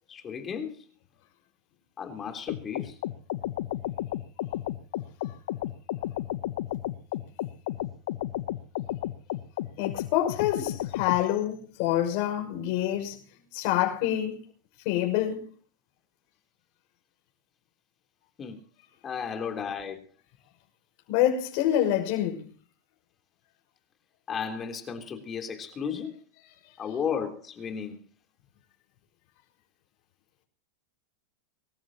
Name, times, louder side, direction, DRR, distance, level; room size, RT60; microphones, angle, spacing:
voice 1, 0.1-0.8 2.0-3.0 18.4-18.6 19.0-20.0 24.3-26.1 26.8-28.0, left 7 dB, 25° left, 3.5 m, -34 dB
sound 1, 2.5-11.2, left 14 dB, 75° left, 0.9 m, -33 dB
voice 2, 9.8-13.2 13.5-14.4 14.8-15.5 21.1-22.5, left 12 dB, 55° left, 6.0 m, -26 dB
25.0 x 14.0 x 3.0 m
supercardioid pair, 135°, 0 cm